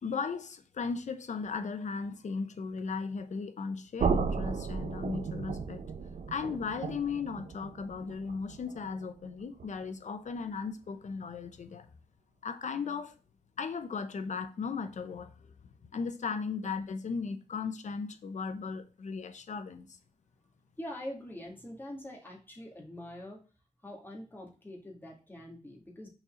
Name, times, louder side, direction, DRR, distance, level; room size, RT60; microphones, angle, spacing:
voice 1, 0.0-5.8 6.3-11.9 12.4-13.1 13.6-15.3 15.9-19.9, left 5 dB, 80° left, 0.8 m, -36 dB
sound 1, 4.0-9.9, right 5 dB, 85° right, 0.7 m, -35 dB
voice 2, 20.8-23.4 23.8-26.1, left 1 dB, 15° left, 2.2 m, -44 dB
5.9 x 4.3 x 3.8 m
wide cardioid pair, 110°, 12 cm